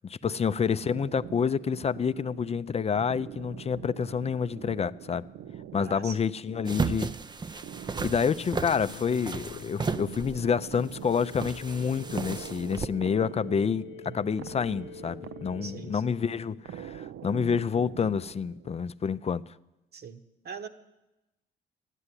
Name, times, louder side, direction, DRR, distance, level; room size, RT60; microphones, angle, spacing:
voice 1, 0.0-5.2 5.7-7.1 8.0-19.5, left 6 dB, 30° left, 0.4 m, -28 dB
sound 1, 0.8-18.9, right 9 dB, 70° right, 0.5 m, -45 dB
voice 2, 5.8-6.2 7.0-7.1 14.1-14.3 15.6-16.0 19.9-20.7, right 6 dB, 55° right, 1.3 m, -42 dB
sound 2, 6.6-12.9, right 4 dB, 20° right, 0.4 m, -34 dB
sound 3, 8.7-16.6, left 10 dB, 90° left, 0.6 m, -47 dB
14.0 x 9.9 x 9.7 m
cardioid pair, 90°, 20 cm